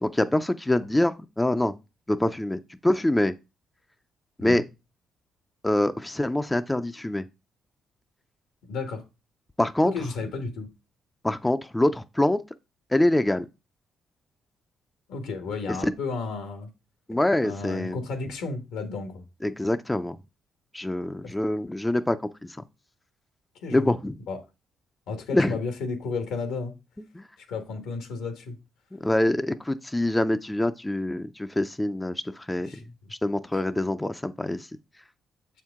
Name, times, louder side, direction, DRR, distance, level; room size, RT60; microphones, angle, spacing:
voice 1, 0.0-1.8 2.1-3.3 4.4-4.6 5.6-7.2 9.6-9.9 11.2-12.4 12.9-13.5 15.7-15.8 17.1-18.0 19.4-20.2 20.7-22.6 23.7-24.2 25.3-25.6 27.1-27.3 28.9-32.7 33.2-34.7, left 1 dB, 10° left, 0.4 m, -25 dB
voice 2, 8.7-9.0 9.8-10.7 15.1-16.7 17.4-19.2 21.2-21.3 23.6-23.9 24.3-24.4 25.1-26.7 27.4-28.6 32.6-32.8, left 4 dB, 90° left, 1.4 m, -33 dB
7.1 x 4.5 x 3.6 m
cardioid pair, 90°, 0 cm